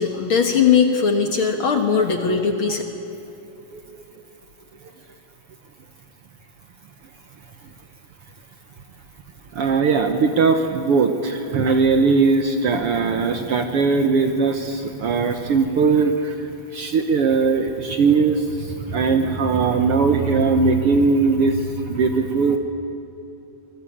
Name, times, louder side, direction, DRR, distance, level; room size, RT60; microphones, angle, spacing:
voice 1, 0.0-2.8, left 6 dB, 50° left, 5 dB, 1.8 m, -19 dB
voice 2, 9.5-22.6, right 4 dB, 60° right, 6 dB, 1.7 m, -19 dB
25.5 x 20.0 x 8.6 m, 2.8 s
omnidirectional pair, 3.5 m